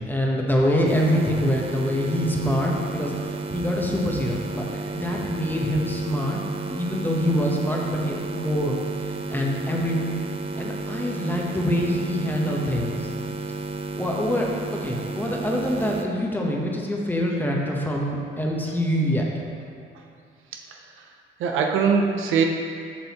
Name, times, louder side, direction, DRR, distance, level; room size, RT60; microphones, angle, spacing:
voice 1, 0.0-3.2 3.5-6.4 6.7-8.8 9.0-10.1 10.6-13.1 14.0-19.3, equal, 10° left, -2 dB, 1.0 m, -25 dB
sound 1, 0.9-16.1, right 3 dB, 30° right, 0.5 m, -32 dB
voice 2, 20.5-21.1 21.4-22.4, right 6 dB, 85° right, 2 dB, 0.6 m, -23 dB
7.2 x 5.4 x 2.9 m, 2.3 s
cardioid pair, 90°, 20 cm